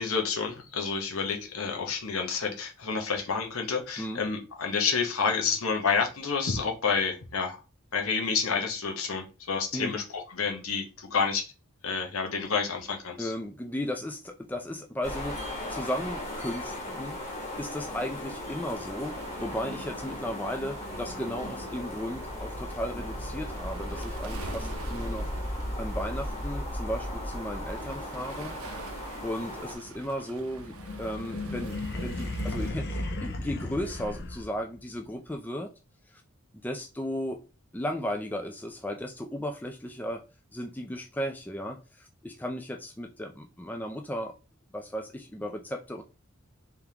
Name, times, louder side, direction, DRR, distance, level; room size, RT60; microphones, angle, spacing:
voice 1, 0.0-7.6 7.9-11.4 11.8-13.3, left 5 dB, 85° left, 1.0 m, -29 dB
voice 2, 13.2-17.2 17.6-25.3 25.8-28.6 28.8-29.0 29.2-35.7 36.1-36.2 36.6-37.4 37.7-40.2 40.5-44.3 44.7-46.0, equal, 10° left, 0.3 m, -35 dB
sound 1, 15.0-29.8, left 1 dB, 30° left, 1.2 m, -36 dB
Waves surf, 19.0-32.7, right 4 dB, 85° right, 0.6 m, -47 dB
sound 2, 30.5-34.8, left 2 dB, 50° left, 0.7 m, -35 dB
3.5 x 3.5 x 2.9 m
head